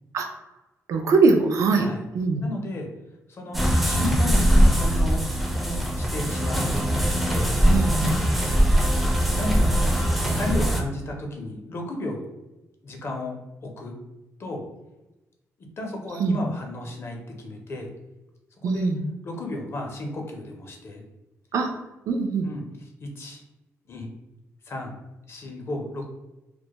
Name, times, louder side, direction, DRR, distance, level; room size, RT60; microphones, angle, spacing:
voice 1, 0.9-1.9 2.1-2.4 7.6-8.2 16.2-16.4 18.6-19.0 21.5-21.7 22.1-22.5, right 4 dB, 65° right, 4 dB, 0.3 m, -22 dB
voice 2, 2.4-2.9 3.3-7.5 9.1-9.7 10.2-12.2 12.8-13.4 13.6-13.9 14.4-14.6 15.8-17.9 18.6-18.9 19.2-21.0 22.4-22.6 23.0-23.4 23.9-24.1 24.7-24.9 25.3-26.0, left 1 dB, 45° left, 1 dB, 0.6 m, -33 dB
sound 1, 3.5-10.8, equal, ahead, 0.4 m, -21 dB
2.2 x 2.1 x 2.8 m, 1.0 s
cardioid pair, 95°, 6 cm